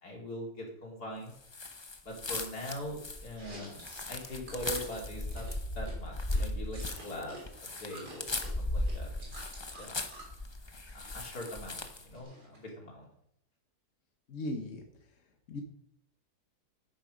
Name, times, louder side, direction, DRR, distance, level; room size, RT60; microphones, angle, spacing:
voice 1, 0.0-1.3 2.0-3.8 4.1-5.5 5.8-9.3 9.8-10.0 10.9-13.1, equal, 70° left, -2 dB, 3.7 m, -42 dB
sound 1, 1.5-12.1, left 2 dB, 25° left, 0.6 m, -37 dB
Chewing mastication, 3.3-7.4 7.7-10.4 10.8-11.5 11.8-12.7, right 2 dB, 80° right, 3.6 m, -50 dB
voice 2, 14.3-14.8 15.5-15.6, left 1 dB, 55° left, 4 dB, 1.4 m, -37 dB
10.5 x 8.8 x 5.1 m, 0.74 s
omnidirectional pair, 1.7 m